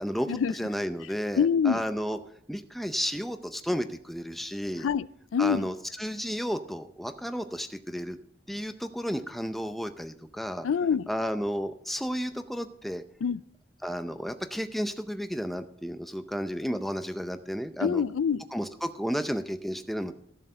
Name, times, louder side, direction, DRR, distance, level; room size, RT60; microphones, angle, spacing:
voice 1, 0.0-2.2 2.5-4.9 5.4-8.2 8.5-10.7 11.1-13.0 13.8-18.0 18.5-20.1, equal, ahead, 0.6 m, -32 dB
voice 2, 1.4-1.8 4.8-5.1 5.3-5.7 10.6-11.1 13.2-13.4 17.8-18.5, left 7 dB, 85° left, 0.4 m, -25 dB
14.5 x 7.4 x 5.6 m
head